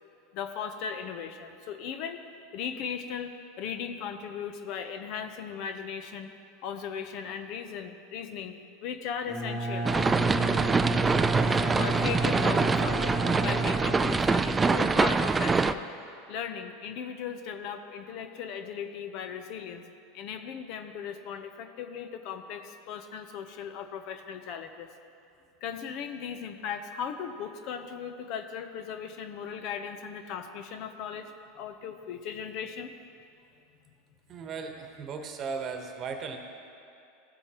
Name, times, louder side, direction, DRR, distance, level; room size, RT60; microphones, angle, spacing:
voice 1, 0.3-2.2 2.5-6.3 6.6-9.9 11.8-15.9 16.3-19.8 20.1-24.9 25.6-32.9, left 7 dB, 55° left, 8 dB, 0.7 m, -37 dB
Bowed string instrument, 9.2-14.7, right 2 dB, 20° left, 1.8 m, -31 dB
sound 1, 9.9-15.7, right 4 dB, 15° right, 0.3 m, -25 dB
voice 2, 34.3-36.4, right 5 dB, 35° right, 4 dB, 1.1 m, -36 dB
15.5 x 7.9 x 3.0 m, 2.6 s
supercardioid pair, 120°, 0 cm